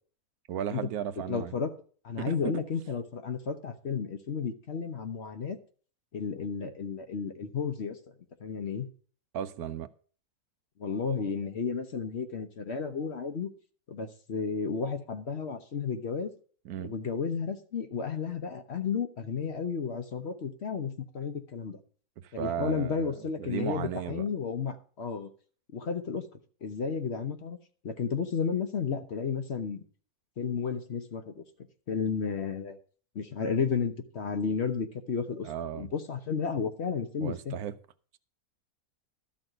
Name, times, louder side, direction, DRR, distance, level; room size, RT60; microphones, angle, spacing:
voice 1, 0.5-1.5 2.2-2.3 9.3-9.9 16.6-16.9 22.2-23.1 23.4-24.3 35.4-35.9 37.2-37.8, right 9 dB, 80° right, 1.2 m, -35 dB
voice 2, 1.3-1.7 2.0-5.6 6.1-8.0 8.4-8.9 10.8-13.5 13.9-16.3 16.8-21.8 22.3-25.3 25.7-26.2 26.6-27.6 27.8-29.8 30.4-31.4 31.9-32.8 33.1-35.5 35.7-37.6, left 6 dB, 50° left, 1.1 m, -32 dB
12.5 x 4.3 x 7.7 m
omnidirectional pair, 1.6 m